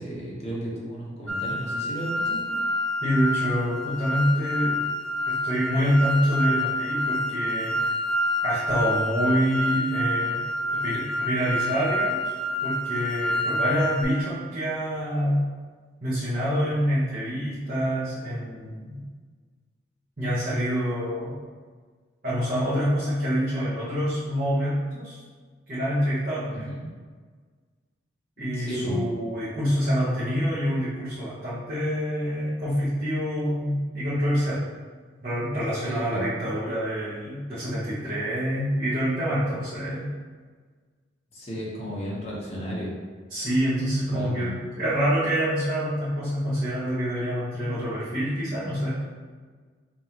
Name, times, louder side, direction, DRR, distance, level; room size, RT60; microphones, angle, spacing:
voice 1, 0.0-2.6 26.5-26.8 28.4-29.0 35.8-36.3 41.3-42.9 44.0-44.5, equal, 35° left, -6 dB, 1.2 m, -34 dB
sound 1, 1.3-14.0, left 1 dB, ahead, 0.5 m, -28 dB
voice 2, 3.0-4.8 5.3-7.7 8.4-10.4 10.7-12.4 12.6-15.5 16.0-19.0 20.2-21.4 22.2-25.2 25.7-26.7 28.4-34.6 35.2-40.1 43.3-48.9, equal, 45° right, -12 dB, 1.2 m, -26 dB
5.1 x 3.0 x 3.0 m, 1.5 s
head